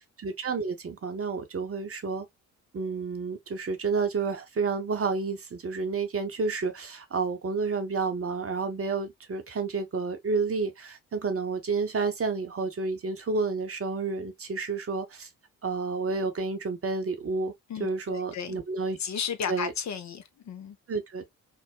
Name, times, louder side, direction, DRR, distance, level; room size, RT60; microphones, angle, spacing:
voice 1, 0.2-2.3 2.7-15.3 15.6-17.5 17.8-19.0 19.5-19.7 20.9-21.3, right 4 dB, 35° right, 0.8 m, -30 dB
voice 2, 17.7-18.6 19.0-20.8, left 7 dB, 45° left, 0.6 m, -34 dB
3.6 x 2.0 x 2.3 m
hypercardioid pair, 40°, 41 cm